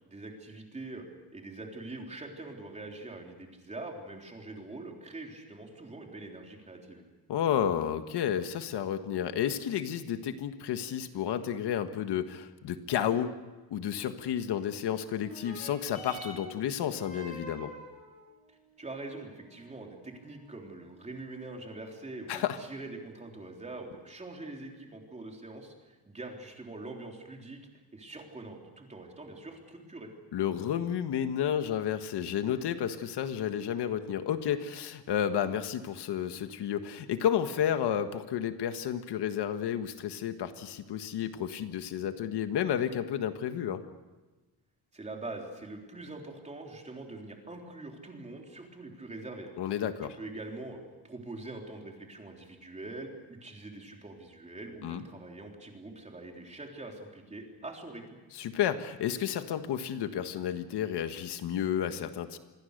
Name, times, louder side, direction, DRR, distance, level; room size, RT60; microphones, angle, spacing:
voice 1, 0.1-1.1 1.3-7.0 18.5-30.1 44.9-49.5 50.2-58.2, right 2 dB, 15° right, 1 dB, 3.6 m, -44 dB
voice 2, 7.3-13.3 13.7-17.7 22.3-22.6 30.3-43.8 49.6-50.2 54.8-55.0 58.3-62.4, left 9 dB, 80° left, 8 dB, 1.6 m, -31 dB
sound 1, 15.1-24.1 24.9-25.0, right 1 dB, 20° left, 7.8 m, -50 dB
27.5 x 21.5 x 6.7 m, 1.2 s
cardioid pair, 165°, 40 cm